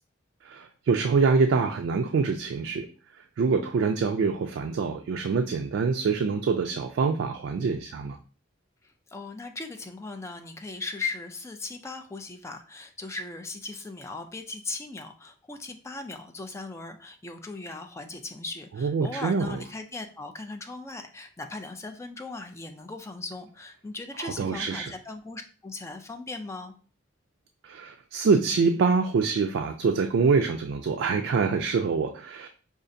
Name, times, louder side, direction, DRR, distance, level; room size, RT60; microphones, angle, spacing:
voice 1, 0.4-2.9 3.4-8.2 18.8-19.6 24.2-24.9 27.6-32.5, right 5 dB, 70° right, 5 dB, 0.3 m, -25 dB
voice 2, 8.8-26.8, left 3 dB, 15° left, 6 dB, 0.3 m, -38 dB
5.0 x 2.4 x 2.6 m, 0.39 s
head